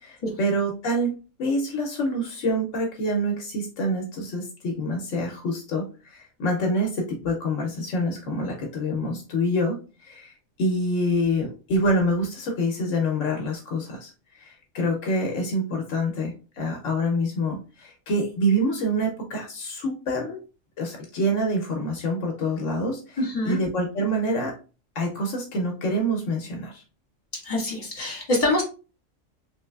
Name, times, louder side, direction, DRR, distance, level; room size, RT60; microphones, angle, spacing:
voice 1, 0.0-20.4 20.8-23.2 23.5-24.5 25.0-26.8, equal, 75° left, 2 dB, 1.0 m, -26 dB
voice 2, 23.2-23.6 27.4-28.6, left 1 dB, 30° left, -3 dB, 1.5 m, -25 dB
3.1 x 3.1 x 2.3 m, 0.34 s
omnidirectional pair, 1.3 m